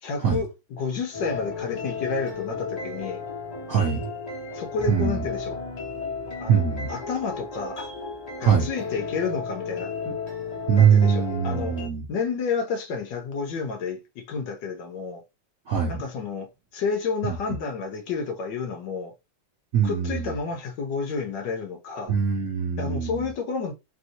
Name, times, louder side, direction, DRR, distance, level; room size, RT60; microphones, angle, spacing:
voice 1, 0.0-3.2 4.5-5.6 6.4-6.6 6.9-7.9 8.4-10.2 10.8-11.8 12.1-15.2 15.9-19.1 19.8-22.1 22.8-23.7, left 5 dB, 70° left, 1.2 m, -30 dB
sound 1, 1.1-11.9, left 4 dB, 30° left, 0.7 m, -34 dB
voice 2, 3.7-4.1 4.9-5.2 6.5-6.9 8.4-8.7 10.7-12.1 15.7-16.0 17.2-17.4 19.7-20.3 22.1-23.3, right 7 dB, 70° right, 0.8 m, -22 dB
3.4 x 2.6 x 2.6 m
omnidirectional pair, 2.3 m